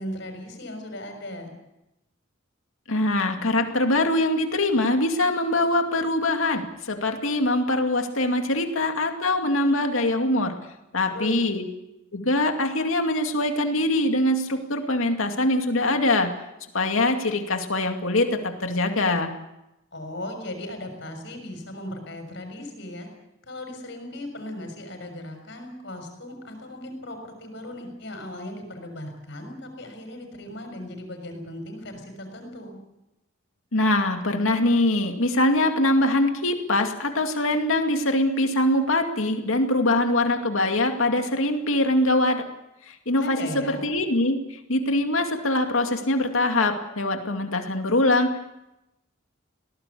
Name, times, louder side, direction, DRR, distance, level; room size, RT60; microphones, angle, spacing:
voice 1, 0.0-1.5 11.1-11.4 19.9-23.1 23.4-32.8 43.2-43.9, left 1 dB, 60° left, 5 dB, 6.4 m, -37 dB
voice 2, 2.9-10.5 10.9-11.7 12.1-16.3 16.7-19.3 33.7-42.4 42.9-48.5, left 1 dB, 80° left, 4 dB, 2.4 m, -23 dB
22.5 x 18.5 x 8.5 m, 0.92 s
head